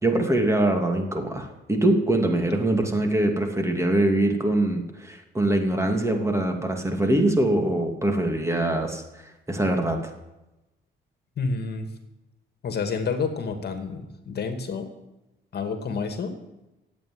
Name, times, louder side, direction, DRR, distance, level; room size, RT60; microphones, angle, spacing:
voice 1, 0.0-9.0 9.5-10.0, right 1 dB, 15° right, 4 dB, 2.7 m, -23 dB
voice 2, 11.4-11.9 12.6-14.9 15.5-16.3, left 4 dB, 55° left, 7 dB, 2.2 m, -29 dB
14.0 x 8.7 x 9.6 m, 0.97 s
cardioid pair, 90°, 20 cm